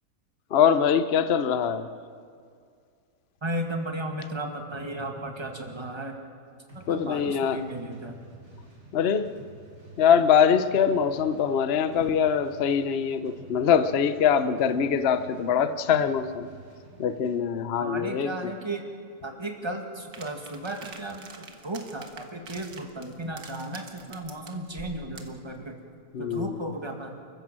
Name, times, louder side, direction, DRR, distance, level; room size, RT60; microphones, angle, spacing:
voice 1, 0.5-1.9 6.9-7.6 8.9-9.3 10.0-16.5 17.0-18.5 26.1-26.6, left 7 dB, 50° left, 12 dB, 0.9 m, -23 dB
voice 2, 3.4-6.2 6.7-8.2 17.8-18.8 19.2-25.8 26.2-27.2, right 1 dB, 15° right, 3 dB, 2.2 m, -35 dB
sound 1, 6.7-17.4, right 1 dB, 55° right, 4.3 m, -50 dB
sound 2, 20.1-25.4, right 5 dB, 75° right, 2.1 m, -46 dB
29.0 x 15.0 x 7.6 m, 2.2 s
omnidirectional pair, 1.7 m